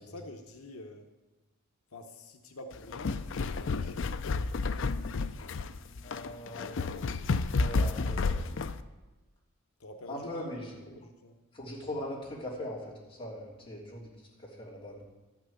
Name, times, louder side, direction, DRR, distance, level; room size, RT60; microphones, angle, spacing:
voice 1, 0.1-1.1 1.9-4.1 9.8-11.4, left 2 dB, 90° left, 4 dB, 0.9 m, -47 dB
sound 1, 2.7-8.8, left 4 dB, 60° left, 0.5 m, -31 dB
voice 2, 6.0-6.9 7.6-8.4 10.1-10.7 11.5-15.1, left 1 dB, 25° left, -6 dB, 3.4 m, -41 dB
12.5 x 6.1 x 8.6 m, 1.2 s
head